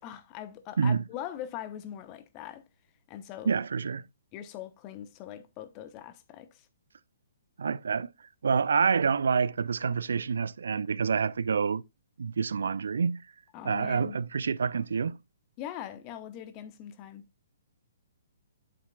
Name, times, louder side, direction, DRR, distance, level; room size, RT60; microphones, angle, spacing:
voice 1, 0.0-2.6 3.1-3.5 4.3-6.7 13.5-14.2 15.6-17.2, left 10 dB, 30° left, 1.1 m, -41 dB
voice 2, 3.4-4.0 7.6-8.1 8.4-11.8 12.2-13.2 13.6-15.2, right 6 dB, 65° right, 0.4 m, -27 dB
8.9 x 7.3 x 2.4 m
figure-of-eight pair, 125°, 0 cm